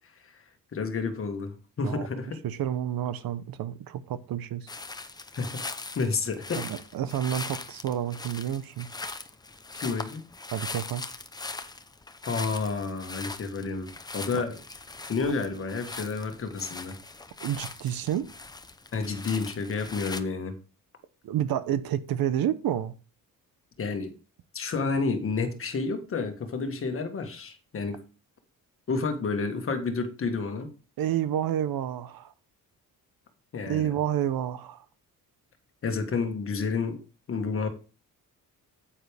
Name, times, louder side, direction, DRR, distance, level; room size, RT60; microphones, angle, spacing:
voice 1, 0.7-2.4 5.4-5.6 5.9-6.7 9.7-10.3 12.3-14.6 15.0-17.0 18.9-20.5 23.8-24.1 24.5-28.0 28.9-30.7 33.5-34.0 35.8-37.0 37.3-37.7, left 4 dB, 40° left, 1.6 m, -30 dB
voice 2, 2.4-4.7 6.5-8.9 10.5-11.0 14.3-14.4 17.4-18.3 21.2-22.9 31.0-32.3 33.7-34.8, right 11 dB, 80° right, 1.0 m, -29 dB
sound 1, 4.7-20.2, left 3 dB, 10° left, 0.6 m, -41 dB
9.5 x 8.8 x 3.4 m
wide cardioid pair, 170°, 35 cm